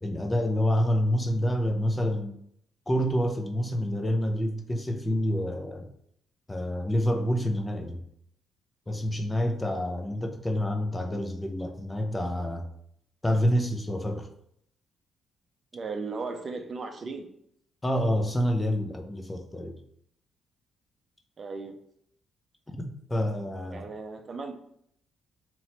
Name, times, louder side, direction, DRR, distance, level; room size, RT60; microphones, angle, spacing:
voice 1, 0.0-2.4 2.9-5.9 6.5-8.0 8.9-12.7 13.2-14.3 17.8-19.7 22.7-22.8 23.1-23.9, equal, 15° left, 3 dB, 0.6 m, -27 dB
voice 2, 15.7-17.2 21.4-21.8 23.7-24.5, right 4 dB, 40° right, 5 dB, 0.6 m, -36 dB
3.0 x 2.9 x 4.2 m, 0.69 s
cardioid pair, 90°, 0 cm